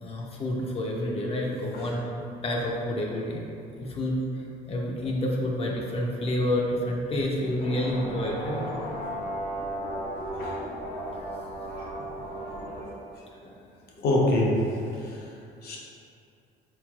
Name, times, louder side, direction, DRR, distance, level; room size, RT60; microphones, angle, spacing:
voice 1, 0.0-2.0 2.4-3.4 3.8-4.2 4.7-8.6 12.9-13.0 13.4-13.5 14.0-14.1, left 1 dB, 35° left, -2 dB, 0.5 m, -29 dB
sound 1, 7.6-12.8, equal, 85° left, 1.1 m, -35 dB
voice 2, 10.2-10.6 11.8-11.9 14.0-14.6 15.0-15.2 15.6-15.8, left 1 dB, 70° left, -3 dB, 0.7 m, -26 dB
4.3 x 3.1 x 2.3 m, 2.6 s
cardioid pair, 110°, 17 cm